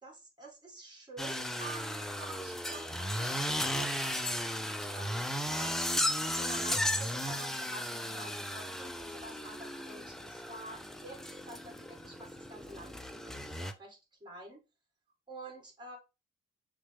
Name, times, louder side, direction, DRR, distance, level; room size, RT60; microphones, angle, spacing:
voice 1, 0.0-5.7 6.2-14.6 15.3-16.0, right 2 dB, 20° right, 0 dB, 2.0 m, -49 dB
sound 1, 1.2-13.7, equal, ahead, 0.5 m, -35 dB
6.1 x 2.3 x 3.4 m, 0.28 s
cardioid pair, 90°, 20 cm